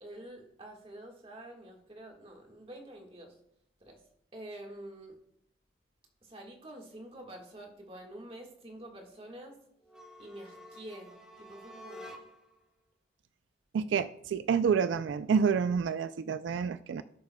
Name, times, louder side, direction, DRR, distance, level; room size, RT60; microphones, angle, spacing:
voice 1, 0.0-3.4 3.8-4.0 4.3-5.2 6.2-9.6 10.2-12.2, right 1 dB, 30° right, 2 dB, 1.6 m, -47 dB
sound 1, 9.8-12.6, equal, 5° right, 1.2 m, -50 dB
voice 2, 13.7-17.0, right 6 dB, 90° right, 12 dB, 0.3 m, -28 dB
17.5 x 6.9 x 2.2 m, 0.74 s
head